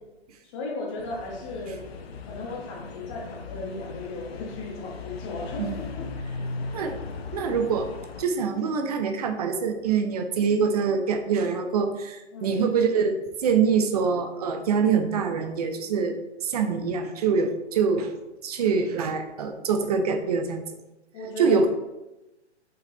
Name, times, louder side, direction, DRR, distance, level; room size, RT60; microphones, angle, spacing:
voice 1, 0.4-1.8 2.2-6.1 6.7-6.8 12.3-12.7 21.1-21.7, left 2 dB, 25° left, -1 dB, 1.7 m, -36 dB
sound 1, 1.0-8.2, left 4 dB, 60° left, 0.9 m, -38 dB
voice 2, 7.3-7.9 8.2-18.1 18.4-20.6 21.4-21.7, right 5 dB, 35° right, 6 dB, 0.7 m, -24 dB
5.7 x 5.2 x 3.9 m, 0.99 s
hypercardioid pair, 145°, 35 cm